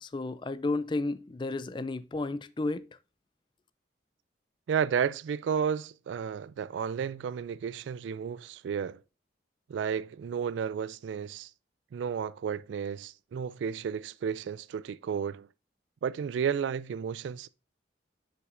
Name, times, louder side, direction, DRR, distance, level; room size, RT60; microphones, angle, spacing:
voice 1, 0.0-2.8, left 2 dB, 25° left, 0.4 m, -32 dB
voice 2, 4.7-9.0 9.7-11.5 11.9-15.5 16.0-17.5, right 7 dB, 80° right, 0.3 m, -32 dB
7.7 x 6.4 x 2.5 m
head